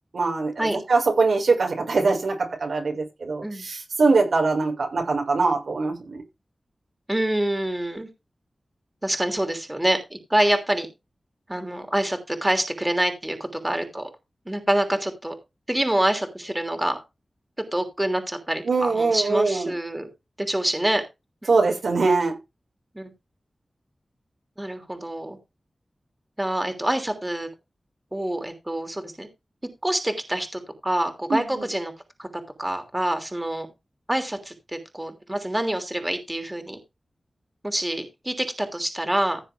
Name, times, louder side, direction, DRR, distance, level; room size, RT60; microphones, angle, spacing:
voice 1, 0.1-6.2 18.6-19.7 21.5-22.4 31.3-31.7, right 3 dB, 90° right, 5.8 m, -22 dB
voice 2, 7.1-8.1 9.0-10.9 11.5-14.1 14.4-15.3 15.7-17.0 17.7-20.1 20.4-21.0 22.9-23.1 24.6-25.4 26.4-27.5 28.1-29.3 29.8-31.9 32.2-32.3 32.6-33.7 34.1-36.8 37.6-39.4, right 1 dB, 15° right, 3.0 m, -26 dB
15.5 x 7.3 x 3.6 m
wide cardioid pair, 85°, 0 cm